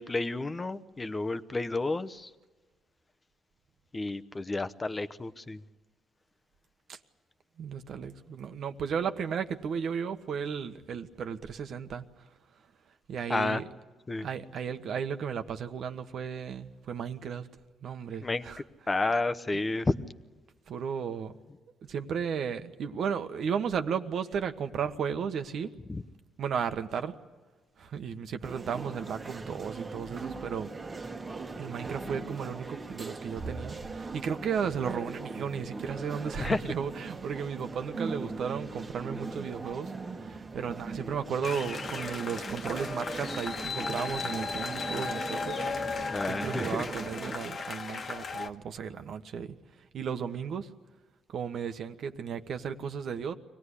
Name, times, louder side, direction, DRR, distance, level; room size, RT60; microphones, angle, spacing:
voice 1, 0.0-2.3 3.9-5.6 13.3-13.6 14.1-14.3 18.2-18.4 18.9-19.9 25.9-26.0 36.3-36.6 46.0-46.8, left 2 dB, 25° left, 1.0 m, -31 dB
voice 2, 7.6-12.0 13.1-13.6 14.2-17.5 17.8-18.6 20.7-21.4 21.9-25.7 26.4-27.1 27.8-30.7 31.6-39.9 40.2-49.6 49.9-50.7 51.3-53.3, right 7 dB, 65° right, 1.4 m, -34 dB
sound 1, 28.4-47.4, right 3 dB, 30° right, 1.6 m, -40 dB
sound 2, 41.4-48.5, left 4 dB, 50° left, 1.5 m, -36 dB
24.5 x 18.0 x 10.0 m
cardioid pair, 90°, 0 cm